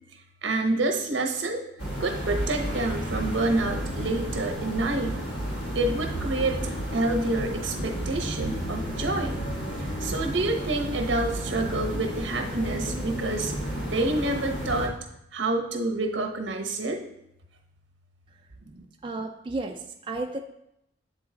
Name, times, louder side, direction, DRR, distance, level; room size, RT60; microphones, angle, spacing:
voice 1, 0.4-1.6 2.0-5.2 5.7-9.4 9.8-13.5 13.8-14.9 15.3-17.0 18.7-18.8, right 2 dB, 80° right, 4 dB, 0.9 m, -28 dB
sound 1, 1.8-14.9, equal, 65° left, 1.3 m, -32 dB
voice 2, 19.0-20.4, right 2 dB, 25° right, 2 dB, 0.3 m, -33 dB
8.0 x 3.9 x 3.8 m, 0.80 s
head